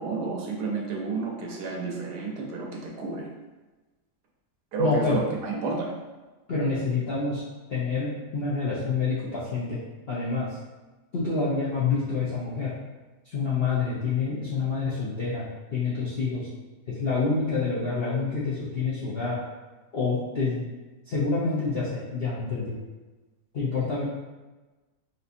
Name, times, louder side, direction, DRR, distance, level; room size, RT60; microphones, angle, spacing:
voice 1, 0.0-3.3 4.7-5.9, right 4 dB, 75° right, -1 dB, 1.2 m, -30 dB
voice 2, 4.8-5.2 6.5-7.4 7.7-9.8 10.1-10.5 11.1-12.7 13.3-15.5 15.7-16.5 16.9-19.4 19.9-20.6 21.1-22.8 23.5-24.0, left 4 dB, 65° left, -9 dB, 0.6 m, -27 dB
4.1 x 2.6 x 2.6 m, 1.2 s
omnidirectional pair, 1.8 m